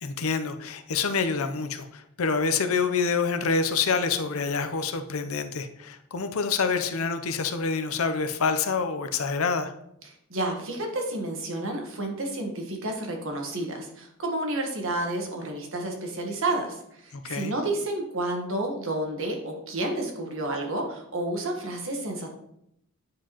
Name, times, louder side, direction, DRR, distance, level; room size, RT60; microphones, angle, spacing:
voice 1, 0.0-9.7 17.1-17.5, left 5 dB, 65° left, 8 dB, 0.6 m, -27 dB
voice 2, 10.3-22.3, right 1 dB, 60° right, 2 dB, 1.4 m, -30 dB
9.2 x 4.6 x 3.0 m, 0.77 s
head